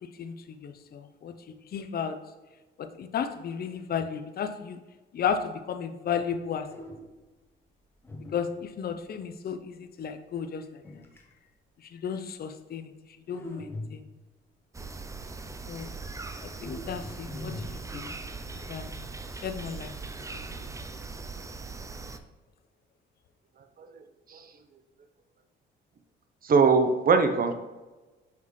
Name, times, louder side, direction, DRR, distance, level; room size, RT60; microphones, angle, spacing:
voice 1, 0.0-1.3 1.7-2.2 2.8-4.8 5.1-6.7 8.3-10.6 11.9-12.9 13.3-14.0 15.7-15.9 16.4-18.1 18.7-19.0 19.4-19.9 20.3-20.5, left 7 dB, 50° left, 9 dB, 0.6 m, -34 dB
sound 1, 6.7-7.3 8.0-8.9 10.8-11.4 13.3-14.4 16.5-18.7 20.1-20.6, left 2 dB, 10° left, 1.1 m, -42 dB
sound 2, 14.7-22.2, right 3 dB, 15° right, 0.5 m, -40 dB
voice 2, 26.4-27.5, right 4 dB, 45° right, 7 dB, 0.8 m, -21 dB
5.8 x 5.6 x 3.2 m, 1.2 s
cardioid pair, 90°, 20 cm